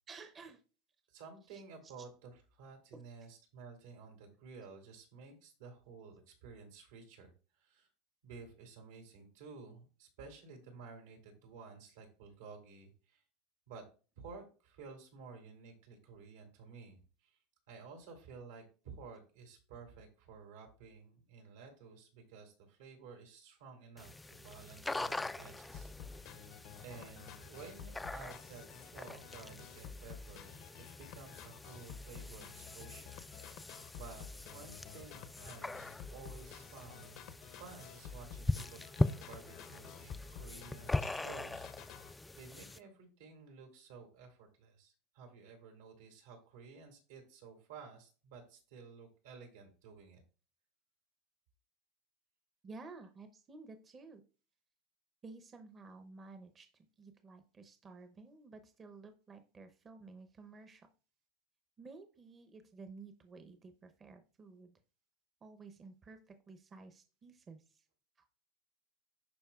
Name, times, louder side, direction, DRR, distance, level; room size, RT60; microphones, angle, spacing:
voice 1, 0.1-0.6 1.4-2.1 2.9-3.3 52.6-54.2 55.2-60.9 61.8-64.8 65.4-67.8 68.2-68.4, right 3 dB, 25° right, 7 dB, 0.7 m, -53 dB
voice 2, 1.1-7.9 8.2-13.2 13.7-13.9 14.1-17.4 17.7-26.5 26.8-33.2 33.5-37.2 37.5-50.2, right 5 dB, 85° right, 2 dB, 2.8 m, -53 dB
sound 1, 24.0-42.8, left 2 dB, 10° left, 0.3 m, -42 dB
sound 2, 25.7-42.1, left 7 dB, 55° left, 0.7 m, -52 dB
11.5 x 4.2 x 2.4 m, 0.35 s
supercardioid pair, 135°, 0 cm